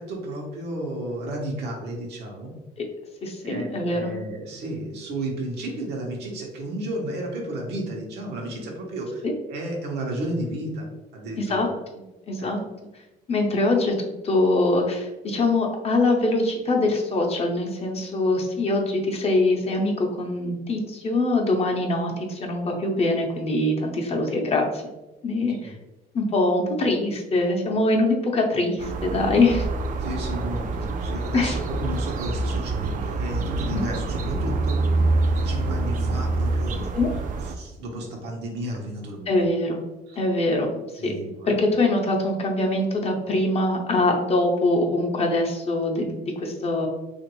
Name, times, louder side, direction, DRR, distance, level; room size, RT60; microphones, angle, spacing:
voice 1, 0.0-2.5 3.4-11.7 12.4-12.5 25.5-25.8 30.0-34.8 35.3-37.0 37.4-39.4 40.1-40.2 41.0-41.6, right 1 dB, 80° right, 0 dB, 0.9 m, -33 dB
voice 2, 3.2-4.2 9.2-9.3 11.4-11.7 11.9-12.6 13.3-24.8 25.2-25.7 26.1-29.7 31.3-31.6 33.7-33.8 36.9-37.1 39.3-39.8 40.2-40.7 41.0-41.1 41.5-46.9, left 2 dB, 35° left, 2 dB, 0.6 m, -23 dB
sound 1, 28.8-37.5, right 2 dB, 50° right, 0.4 m, -26 dB
2.9 x 2.5 x 2.9 m, 1.0 s
cardioid pair, 110°, 17 cm